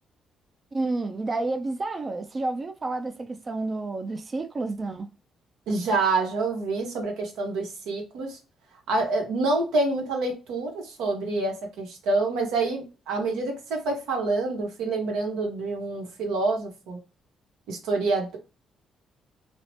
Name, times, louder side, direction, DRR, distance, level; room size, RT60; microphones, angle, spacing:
voice 1, 0.7-5.1, right 2 dB, 35° right, 0.3 m, -30 dB
voice 2, 5.7-8.4 8.9-17.0 17.7-18.4, right 3 dB, 90° right, 0.9 m, -27 dB
2.7 x 2.0 x 3.0 m
cardioid pair, 90°, 0 cm